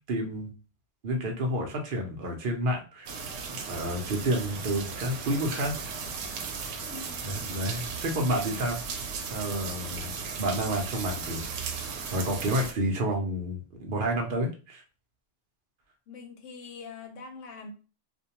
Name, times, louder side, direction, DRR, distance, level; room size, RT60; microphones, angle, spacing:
voice 1, 0.1-0.5 1.0-3.1 3.6-5.9 7.2-8.8 9.3-11.5 11.8-14.8, right 1 dB, 55° right, 1 dB, 0.7 m, -30 dB
sound 1, 3.1-12.7, right 5 dB, 90° right, 0.9 m, -36 dB
voice 2, 6.9-7.6 16.1-17.7, left 4 dB, 90° left, 4 dB, 1.0 m, -44 dB
2.5 x 2.2 x 2.8 m, 0.33 s
omnidirectional pair, 1.2 m